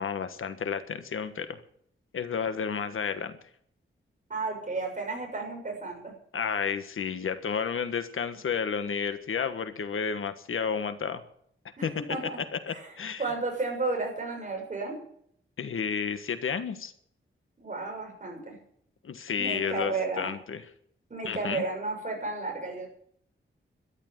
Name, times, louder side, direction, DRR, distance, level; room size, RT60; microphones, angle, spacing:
voice 1, 0.0-1.6 2.1-3.4 6.3-11.2 11.8-11.9 12.5-13.2 15.6-16.9 19.0-20.6 21.2-21.6, left 6 dB, 80° left, 10 dB, 1.4 m, -31 dB
voice 2, 4.3-6.1 11.8-12.4 12.7-12.9 13.2-15.0 17.6-18.6 19.4-20.3 21.1-22.9, right 3 dB, 35° right, 1 dB, 6.7 m, -33 dB
13.0 x 11.0 x 8.0 m, 0.65 s
wide cardioid pair, 150°, 21 cm